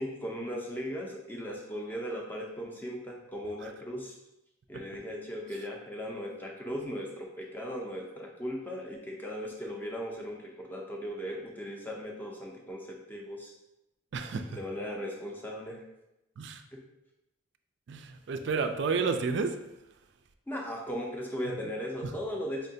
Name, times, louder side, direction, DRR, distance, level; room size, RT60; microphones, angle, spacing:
voice 1, 0.0-4.2 4.7-13.5 14.5-15.9 16.7-16.8 20.5-22.7, equal, 10° left, 0 dB, 0.5 m, -37 dB
voice 2, 14.1-14.6 16.4-16.6 17.9-19.6 21.5-21.6 22.0-22.1, right 4 dB, 55° right, 7 dB, 0.3 m, -31 dB
4.4 x 3.2 x 2.7 m, 0.92 s
head